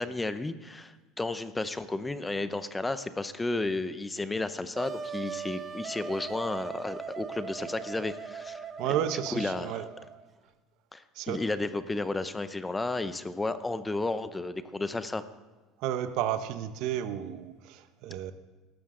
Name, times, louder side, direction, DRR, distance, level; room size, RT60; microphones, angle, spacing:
voice 1, 0.0-8.6 9.0-9.9 10.9-15.2, left 2 dB, 10° left, 12 dB, 0.7 m, -33 dB
Wind instrument woodwind instrument, 4.8-10.3, right 6 dB, 30° right, 0.8 m, -40 dB
voice 2, 8.8-9.9 11.1-11.4 15.8-18.3, right 10 dB, 65° right, 10 dB, 0.8 m, -32 dB
17.5 x 13.0 x 3.8 m, 1.3 s
supercardioid pair, 130°, 0 cm